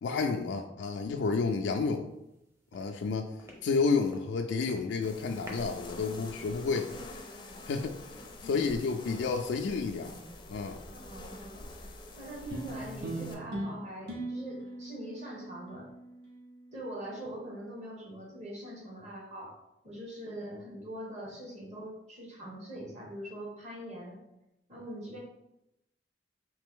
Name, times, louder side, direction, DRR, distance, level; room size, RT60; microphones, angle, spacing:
voice 1, 0.0-2.1 2.7-3.4 3.6-7.0 7.6-8.1 8.4-10.2 10.5-10.8, left 4 dB, 90° left, 4 dB, 0.3 m, -30 dB
sound 1, 2.2-2.4 2.7-4.4 4.6-5.0 5.4-7.2, equal, 15° right, 0.7 m, -50 dB
sound 2, 5.0-13.3, left 2 dB, 25° left, 0.5 m, -46 dB
voice 2, 10.9-11.7 12.2-15.9 16.7-19.5 19.8-24.2 24.7-25.2, right 1 dB, 40° right, -2 dB, 1.2 m, -43 dB
sound 3, 12.5-17.1, right 1 dB, 70° right, 0.9 m, -40 dB
3.3 x 2.9 x 3.6 m, 0.86 s
head